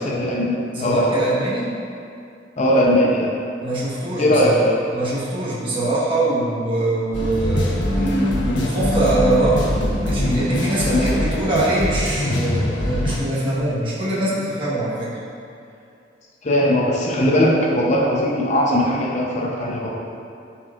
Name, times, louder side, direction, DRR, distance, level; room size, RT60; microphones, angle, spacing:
voice 1, 0.1-1.1 2.6-3.3 4.2-4.8 8.0-8.3 10.9-11.4 16.4-19.9, equal, 40° left, -3 dB, 0.7 m, -19 dB
voice 2, 0.7-1.7 3.6-4.6 4.9-7.9 8.5-9.8 10.0-15.1, right 2 dB, 30° right, -9 dB, 1.3 m, -23 dB
sound 1, 7.1-13.2, left 1 dB, 85° left, 1.1 m, -22 dB
11.5 x 4.4 x 2.5 m, 2.5 s
head